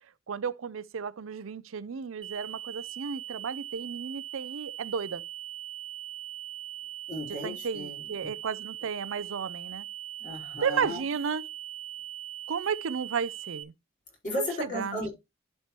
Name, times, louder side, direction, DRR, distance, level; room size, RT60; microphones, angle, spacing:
voice 1, 0.3-5.2 7.4-9.9 10.6-11.4 12.5-13.7 14.4-14.5 14.7-15.0, right 6 dB, 80° right, 0.5 m, -33 dB
sound 1, 2.2-13.6, right 12 dB, 25° right, 0.5 m, -41 dB
voice 2, 7.1-8.1 10.2-11.0 14.2-15.1, left 1 dB, 40° left, 4.8 m, -35 dB
11.5 x 4.4 x 3.0 m
head